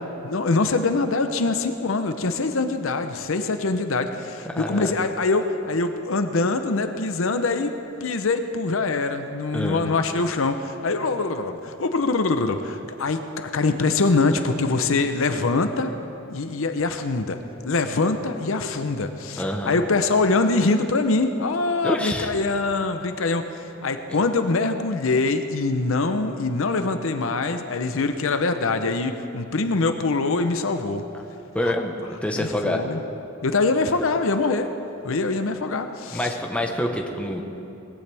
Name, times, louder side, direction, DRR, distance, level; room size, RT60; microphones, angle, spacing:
voice 1, 0.2-7.7 8.0-15.9 16.3-17.4 17.6-23.4 23.8-31.0 31.6-31.7 32.4-33.0 33.4-34.7 35.0-36.3, left 3 dB, 70° left, 8 dB, 0.8 m, -24 dB
voice 2, 4.4-4.9 9.5-9.8 19.4-19.8 21.8-22.3 31.5-31.9 32.2-32.8 36.1-37.4, left 1 dB, 5° left, 1 dB, 1.1 m, -26 dB
19.5 x 15.0 x 3.5 m, 2.9 s
head